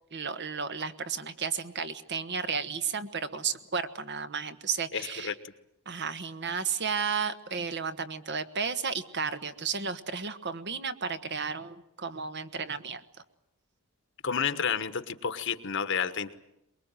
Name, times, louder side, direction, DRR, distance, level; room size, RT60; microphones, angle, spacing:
voice 1, 0.1-5.3 5.8-13.0, right 6 dB, 50° right, 10 dB, 1.4 m, -33 dB
voice 2, 4.9-5.3 14.2-16.4, left 6 dB, 60° left, 11 dB, 1.4 m, -30 dB
23.5 x 22.0 x 9.1 m, 0.85 s
head